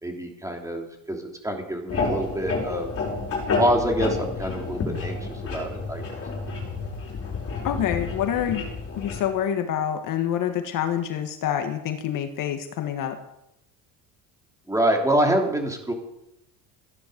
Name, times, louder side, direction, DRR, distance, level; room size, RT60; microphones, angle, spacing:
voice 1, 0.0-2.9 3.6-6.2 14.7-15.9, right 1 dB, 10° right, 2 dB, 3.0 m, -26 dB
sound 1, 1.9-9.3, left 3 dB, 35° left, 5.0 m, -30 dB
voice 2, 7.6-8.6 9.0-13.2, left 9 dB, 55° left, 7 dB, 1.6 m, -27 dB
15.0 x 10.5 x 6.8 m, 0.85 s
cardioid pair, 130°, 40 cm